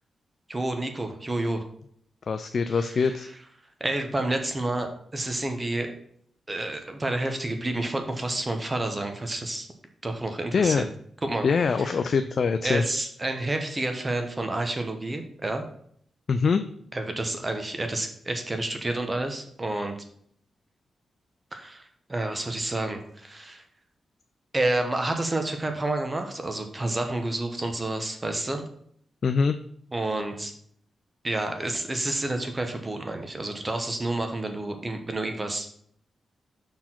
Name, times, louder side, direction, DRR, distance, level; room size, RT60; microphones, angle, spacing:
voice 1, 0.5-1.6 2.7-3.3 3.8-5.9 6.5-9.7 10.0-10.9 11.2-11.5 11.8-12.0 12.6-15.6 16.9-20.0 21.5-23.6 24.5-28.6 29.9-30.5 31.2-35.7, right 2 dB, 25° right, 5 dB, 1.0 m, -29 dB
voice 2, 2.3-3.3 10.5-10.8 11.4-12.8 16.3-16.6 29.2-29.6, left 5 dB, 60° left, 9 dB, 0.4 m, -23 dB
5.8 x 4.5 x 5.9 m, 0.65 s
cardioid pair, 85°, 0 cm